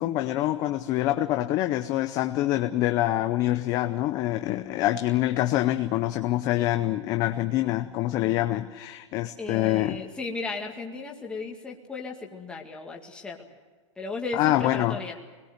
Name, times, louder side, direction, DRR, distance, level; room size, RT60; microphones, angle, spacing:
voice 1, 0.0-10.0 14.3-15.0, left 15 dB, 20° left, 8 dB, 0.6 m, -25 dB
voice 2, 9.4-13.4 14.0-15.2, left 3 dB, 5° left, 0 dB, 2.0 m, -35 dB
23.5 x 21.0 x 8.0 m, 1.4 s
supercardioid pair, 165°, 16 cm